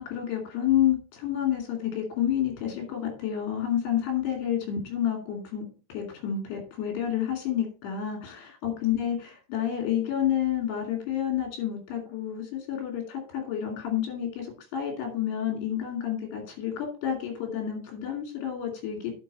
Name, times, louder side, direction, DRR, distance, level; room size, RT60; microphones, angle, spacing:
voice 1, 0.0-5.6 5.9-19.2, left 10 dB, 70° left, 3 dB, 4.4 m, -29 dB
10.5 x 5.8 x 4.1 m, 0.34 s
omnidirectional pair, 5.0 m